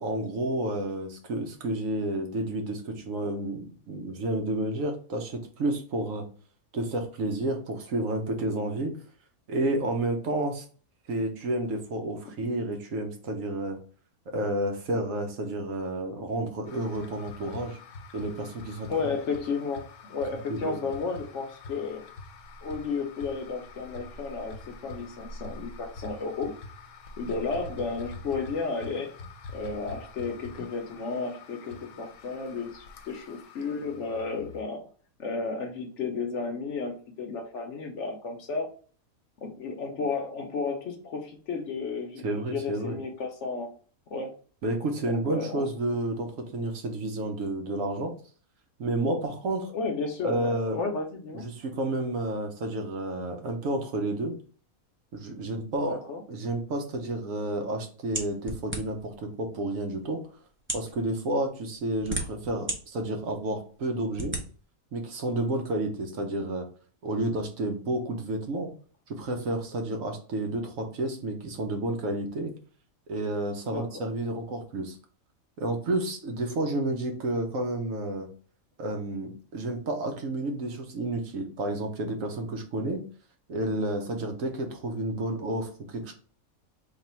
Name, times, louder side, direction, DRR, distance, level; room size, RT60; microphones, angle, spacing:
voice 1, 0.0-6.2 6.7-9.0 9.5-10.6 11.1-13.8 14.3-17.8 18.1-18.9 20.5-20.7 42.2-43.0 44.6-48.1 48.8-49.7 50.2-50.8 51.3-54.4 55.1-56.0 56.3-60.2 60.7-64.4 64.9-66.7 67.0-68.7 69.1-72.5 73.1-75.0 75.6-78.3 78.8-83.0 83.5-86.1, right 1 dB, 70° right, 4 dB, 1.2 m, -30 dB
sound 1, 16.7-34.6, left 3 dB, 90° left, 1.2 m, -45 dB
voice 2, 18.9-22.1 22.6-26.5 27.2-29.2 29.5-34.9 35.2-38.7 39.4-43.7 44.1-44.3 45.1-45.7 49.7-51.5 55.8-56.2 73.6-74.1, left 4 dB, 65° left, 4 dB, 0.9 m, -33 dB
sound 2, 58.1-59.1 59.9-60.0 60.6-60.9 61.7-62.8 63.3-63.4 64.1-64.4, right 1 dB, 20° right, 0.3 m, -33 dB
3.4 x 2.4 x 4.2 m, 0.41 s
omnidirectional pair, 1.5 m